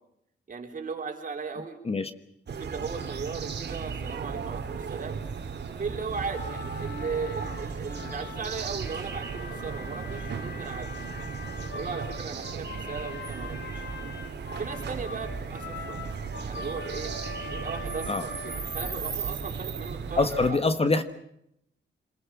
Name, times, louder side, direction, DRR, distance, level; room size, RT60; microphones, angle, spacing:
voice 1, 0.5-1.8 2.5-5.2 5.7-10.9 11.7-13.9 14.5-16.0 16.4-17.1 17.5-20.6, right 5 dB, 45° right, 4 dB, 4.1 m, -37 dB
sound 1, 2.5-20.5, right 5 dB, 60° right, 2.6 m, -36 dB
sound 2, 6.2-19.2, left 5 dB, 65° left, 2.4 m, -42 dB
voice 2, 20.2-21.0, left 3 dB, 30° left, 10 dB, 1.2 m, -24 dB
26.5 x 21.5 x 7.2 m, 0.78 s
wide cardioid pair, 135°, 20 cm